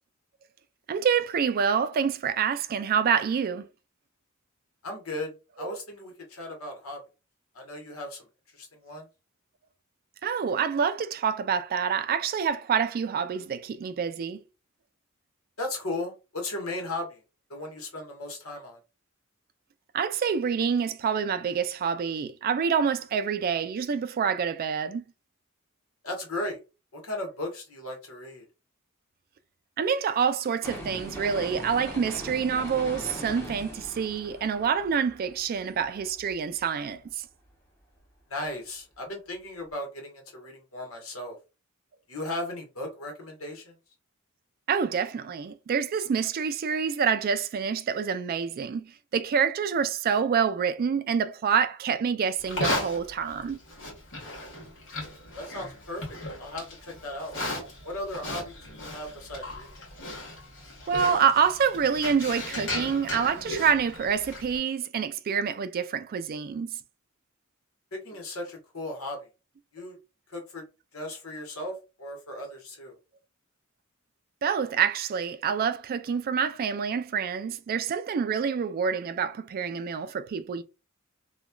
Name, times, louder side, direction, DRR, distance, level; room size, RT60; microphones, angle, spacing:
voice 1, 0.9-3.6 5.6-5.8 10.2-14.4 19.9-25.0 29.8-37.0 44.7-48.8 49.1-53.6 60.9-66.7 74.4-80.6, right 6 dB, 45° right, 0.3 m, -27 dB
voice 2, 4.8-7.0 7.5-8.3 8.5-9.1 15.6-17.2 17.5-18.8 26.0-26.6 26.9-28.4 38.3-41.4 42.1-43.8 55.3-57.4 57.8-59.7 67.9-69.2 69.7-70.0 70.3-70.6 70.9-72.9, left 1 dB, 80° left, 1.2 m, -36 dB
sound 1, 30.6-36.6 37.0-37.1, equal, 15° left, 0.8 m, -41 dB
Livestock farm animals working animals, 52.4-64.6, left 1 dB, 60° left, 1.4 m, -36 dB
3.0 x 2.3 x 2.2 m
head